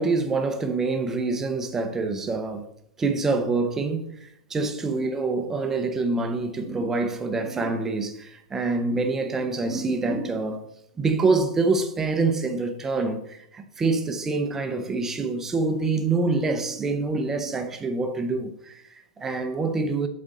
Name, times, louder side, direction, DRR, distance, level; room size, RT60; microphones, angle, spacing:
voice 1, 0.0-2.7 3.0-10.6 11.0-20.1, right 3 dB, 10° right, 0.6 m, -26 dB
7.4 x 4.2 x 5.2 m
supercardioid pair, 160°, 4 cm